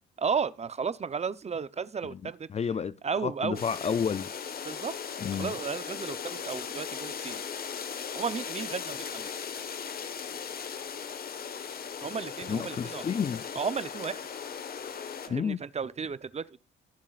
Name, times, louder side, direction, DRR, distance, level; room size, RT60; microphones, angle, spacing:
voice 1, 0.2-2.5 3.0-3.6 4.6-4.9 5.3-7.4 8.1-9.4 12.0-13.0 13.5-14.2 15.3-16.6, right 6 dB, 35° right, 0.8 m, -33 dB
voice 2, 2.5-2.9 3.2-4.3 5.2-5.5 12.5-13.4 15.3-15.6, left 7 dB, 35° left, 0.5 m, -30 dB
sound 1, 3.5-15.3, left 7 dB, 50° left, 1.4 m, -38 dB
22.0 x 7.3 x 2.5 m
cardioid pair, 90°, 20 cm